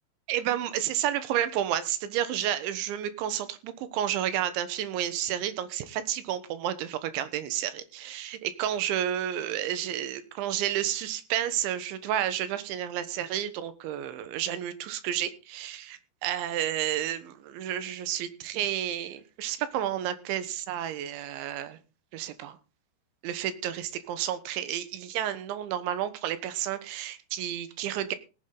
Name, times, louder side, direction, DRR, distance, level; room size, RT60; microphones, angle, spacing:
voice 1, 0.3-21.8 22.1-22.6 23.2-28.2, right 11 dB, 85° right, 3.6 m, -31 dB
18.0 x 9.9 x 3.9 m
omnidirectional pair, 5.2 m